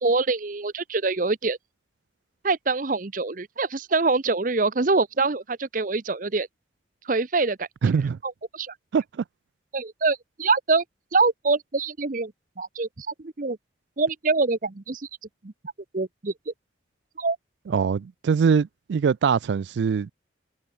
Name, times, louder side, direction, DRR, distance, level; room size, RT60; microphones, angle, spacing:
voice 1, 0.0-1.6 2.4-6.5 7.0-7.7 8.2-8.7 9.7-10.8 11.1-13.6 14.0-15.1 15.4-15.5 15.9-16.5 17.2-17.4, right 3 dB, 45° right, 0.8 m, -25 dB
voice 2, 7.8-8.2 8.9-9.2 17.7-20.1, right 6 dB, 65° right, 0.3 m, -23 dB
head